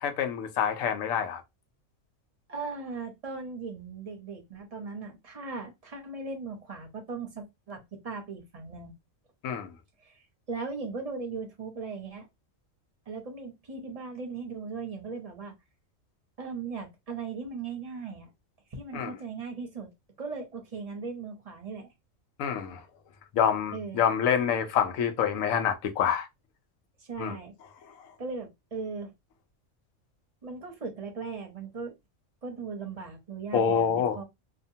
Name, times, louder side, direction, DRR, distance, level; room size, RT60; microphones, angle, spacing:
voice 1, 0.0-1.4 9.4-9.7 18.9-19.1 22.4-22.8 23.3-26.3 27.2-27.4 33.5-34.2, left 8 dB, 85° left, 1.0 m, -26 dB
voice 2, 2.5-8.9 10.0-12.3 13.1-15.5 16.4-18.3 18.7-19.9 20.2-21.9 23.7-24.0 27.0-27.5 28.2-29.1 30.4-31.9 32.4-34.2, right 4 dB, 40° right, 0.6 m, -38 dB
2.8 x 2.1 x 2.6 m
omnidirectional pair, 1.4 m